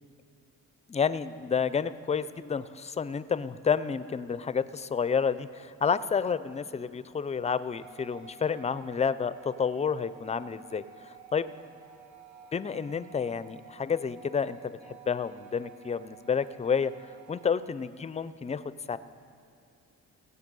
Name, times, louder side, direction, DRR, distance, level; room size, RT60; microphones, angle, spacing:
voice 1, 0.9-10.8 11.3-11.5 12.5-16.9 17.3-19.0, left 6 dB, 20° left, 15 dB, 0.5 m, -30 dB
sound 1, 7.8-17.5, right 8 dB, 75° right, 0.8 m, -52 dB
18.0 x 8.2 x 5.4 m, 2.6 s
cardioid pair, 90°, 30 cm